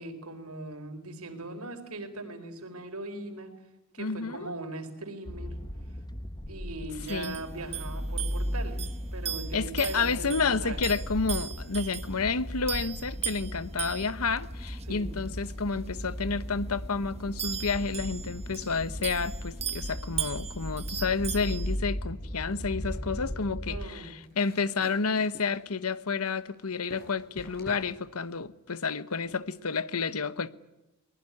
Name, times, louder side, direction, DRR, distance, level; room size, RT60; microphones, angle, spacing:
voice 1, 0.0-3.5 3.9-5.6 6.5-8.8 9.1-10.9 14.8-15.1 23.7-24.1, right 2 dB, 80° right, 4.4 m, -39 dB
voice 2, 4.0-4.5 7.1-7.4 9.5-30.5, left 4 dB, 80° left, 1.1 m, -30 dB
sound 1, 5.3-23.9, equal, 20° left, 1.2 m, -37 dB
sound 2, 7.0-21.8, right 8 dB, 30° right, 1.4 m, -39 dB
sound 3, 22.4-29.4, left 1 dB, 45° left, 7.7 m, -51 dB
23.5 x 20.5 x 9.8 m
head